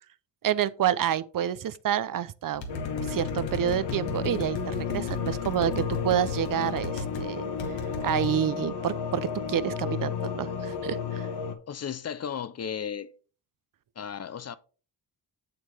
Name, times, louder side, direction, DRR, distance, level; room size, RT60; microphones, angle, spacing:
voice 1, 0.4-7.5 8.0-11.3, right 10 dB, 50° right, 0.6 m, -28 dB
sound 1, 2.5-7.2 7.6-8.4, left 2 dB, 85° left, 1.9 m, -36 dB
sound 2, 2.7-11.6, left 7 dB, 65° left, 1.2 m, -32 dB
voice 2, 11.7-13.1 14.0-14.6, left 8 dB, 35° left, 0.5 m, -34 dB
7.7 x 7.2 x 3.4 m
cardioid pair, 90°, 44 cm